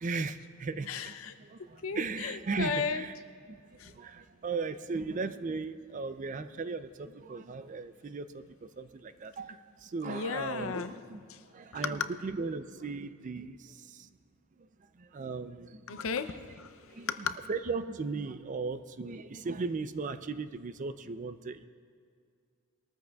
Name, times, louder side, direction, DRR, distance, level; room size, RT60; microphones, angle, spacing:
voice 1, 0.0-3.1 3.5-3.6 3.8-10.8 11.1-11.2 11.5-14.1 15.0-16.0 16.9-17.1 17.5-21.7, right 4 dB, 35° right, 11 dB, 0.4 m, -37 dB
voice 2, 0.9-1.4 1.8-3.0 3.8-3.9 9.4-9.5 10.1-11.0 11.3-11.4 11.7-12.1 15.9-17.3, left 5 dB, 65° left, 11 dB, 0.6 m, -35 dB
21.0 x 13.5 x 2.3 m, 2.2 s
head